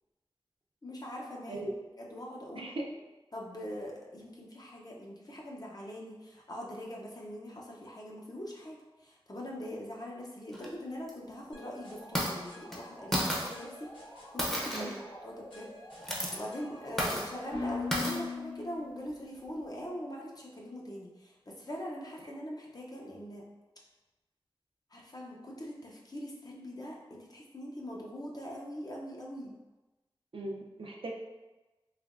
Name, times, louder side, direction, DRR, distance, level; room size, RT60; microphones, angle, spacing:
voice 1, 0.8-1.7 2.0-2.7 3.3-13.9 14.3-14.9 15.2-15.7 16.3-23.5 24.9-29.6, equal, 45° left, -2 dB, 0.6 m, -42 dB
voice 2, 2.5-2.9 14.7-14.9 30.3-31.1, right 1 dB, 70° right, 0 dB, 0.5 m, -38 dB
sound 1, 10.5-10.7 11.1-11.2 12.0-12.3 12.7-12.8 13.1-13.5 14.4-15.0 15.9-16.4 17.0-17.3 17.9-18.2, equal, 5° left, 0.6 m, -32 dB
sound 2, 11.5-19.3, left 3 dB, 65° left, 1.3 m, -43 dB
3.2 x 2.9 x 2.5 m, 1.1 s
wide cardioid pair, 60°, 9 cm